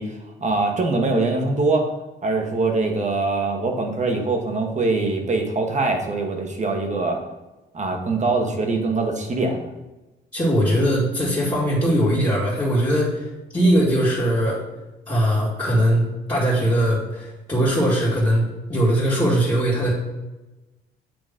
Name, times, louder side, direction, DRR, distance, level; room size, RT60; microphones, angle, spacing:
voice 1, 0.0-1.9 2.2-7.2 7.7-9.7, right 3 dB, 35° right, 2 dB, 1.3 m, -23 dB
voice 2, 10.3-13.3 13.5-14.6 15.1-19.9, equal, 20° left, -10 dB, 2.1 m, -20 dB
8.8 x 3.0 x 3.7 m, 1.1 s
cardioid pair, 90°, 20 cm